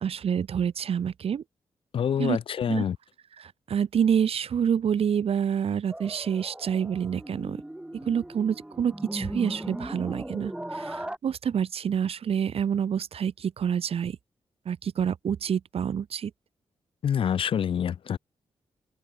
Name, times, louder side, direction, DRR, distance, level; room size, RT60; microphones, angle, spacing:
voice 1, 0.0-1.4 2.2-2.4 2.7-2.8 3.4-7.6 8.1-14.2 14.7-16.3, right 8 dB, 70° right, 1.9 m, -27 dB
voice 2, 1.9-3.0 17.0-18.2, left 8 dB, 60° left, 0.4 m, -26 dB
sound 1, 5.9-11.2, right 1 dB, 10° right, 1.3 m, -38 dB
open air
cardioid pair, 60°, 10 cm